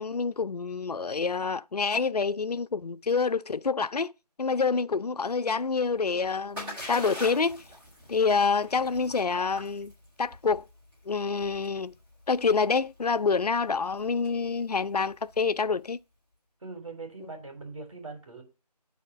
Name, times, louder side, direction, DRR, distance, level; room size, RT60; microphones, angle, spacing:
voice 1, 0.0-4.1 4.4-7.6 8.1-9.9 10.2-10.6 11.1-11.9 12.3-16.0, left 5 dB, 70° left, 0.5 m, -27 dB
Splash splatter, 5.9-15.7, left 1 dB, 5° right, 2.7 m, -45 dB
voice 2, 16.6-18.4, right 3 dB, 55° right, 3.4 m, -41 dB
8.4 x 4.3 x 6.0 m
figure-of-eight pair, 160°, 21 cm